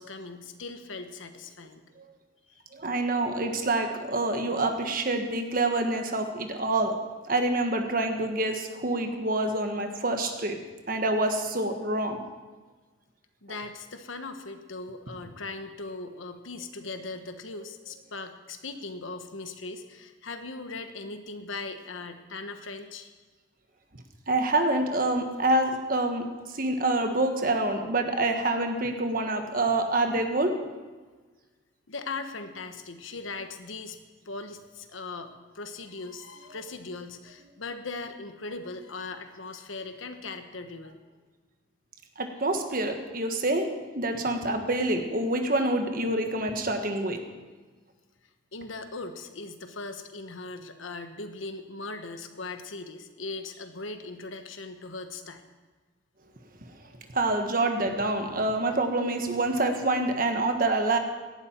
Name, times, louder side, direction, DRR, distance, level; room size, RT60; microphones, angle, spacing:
voice 1, 0.0-1.8 13.4-23.1 31.9-34.0 34.2-41.0 48.5-55.4, left 3 dB, 80° left, 8 dB, 1.2 m, -39 dB
voice 2, 2.7-7.0 7.3-10.6 10.9-12.2 24.3-26.3 26.5-30.6 42.2-43.7 43.9-47.2 57.1-61.0, right 2 dB, 45° right, 5 dB, 1.4 m, -26 dB
17.5 x 12.0 x 4.5 m, 1.3 s
head